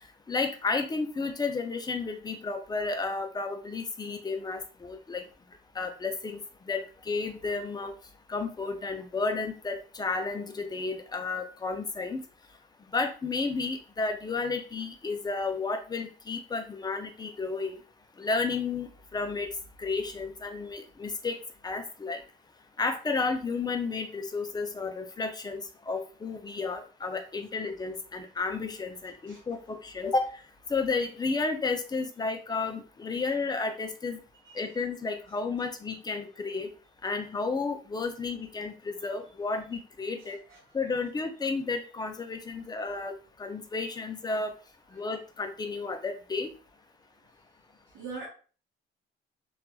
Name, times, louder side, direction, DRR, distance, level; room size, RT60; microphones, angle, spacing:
voice 1, 0.3-5.2 5.8-6.4 6.7-7.9 8.3-12.2 12.9-17.8 18.2-19.5 19.8-21.4 21.6-22.2 22.8-30.3 30.7-34.2 34.6-36.7 37.0-40.4 40.7-43.1 43.4-44.5 44.9-46.5, left 4 dB, 20° left, 6 dB, 0.4 m, -32 dB
voice 2, 40.2-40.6 44.9-45.0 47.9-48.3, right 4 dB, 85° right, -5 dB, 0.8 m, -43 dB
2.9 x 2.3 x 2.2 m, 0.38 s
cardioid pair, 90°, 20 cm